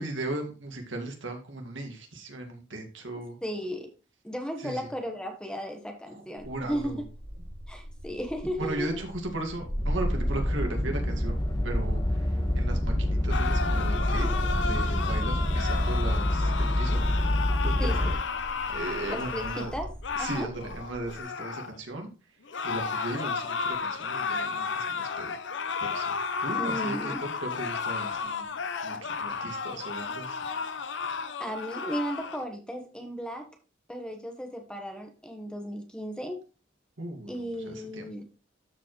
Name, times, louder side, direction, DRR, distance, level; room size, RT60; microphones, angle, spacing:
voice 1, 0.0-3.4 4.6-4.9 6.4-7.0 8.6-11.4 11.6-17.0 17.6-18.1 18.7-19.7 20.2-22.1 22.6-25.3 25.8-26.1 26.4-28.5 28.8-30.4 37.0-38.1, right 2 dB, 80° right, 3 dB, 2.1 m, -37 dB
voice 2, 3.4-3.9 4.2-7.0 7.7-9.0 17.8-18.0 19.1-19.9 20.2-20.5 26.6-27.3 31.4-33.5 33.9-36.4 37.3-38.2, equal, 5° left, 4 dB, 1.2 m, -35 dB
sound 1, 6.4-21.2, equal, 60° right, 3.6 m, -45 dB
sound 2, 9.6-18.1, left 1 dB, 25° left, 1.2 m, -27 dB
sound 3, 13.3-21.8 22.5-32.4, left 5 dB, 70° left, 0.7 m, -33 dB
12.5 x 5.0 x 3.1 m, 0.33 s
head